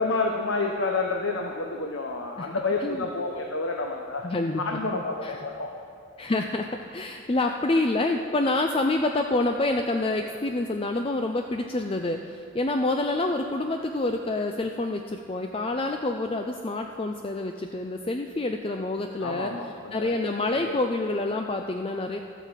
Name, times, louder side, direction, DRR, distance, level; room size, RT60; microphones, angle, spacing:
voice 1, 0.0-4.3 4.6-5.7 19.2-20.8, left 3 dB, 75° left, 1 dB, 1.0 m, -29 dB
voice 2, 4.2-4.6 4.9-5.4 6.2-19.5 19.9-22.2, left 2 dB, 25° left, 4 dB, 0.4 m, -27 dB
13.0 x 9.1 x 7.4 m, 2.5 s
head